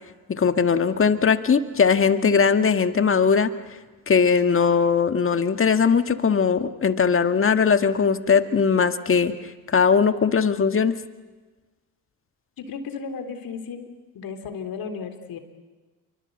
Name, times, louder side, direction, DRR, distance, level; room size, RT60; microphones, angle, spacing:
voice 1, 0.3-3.5 4.1-9.3 9.7-11.0, left 6 dB, 30° left, 9 dB, 1.8 m, -20 dB
voice 2, 12.6-13.9 14.1-15.4, left 5 dB, 60° left, 6 dB, 3.6 m, -34 dB
28.0 x 24.0 x 8.2 m, 1.3 s
supercardioid pair, 70°, 40 cm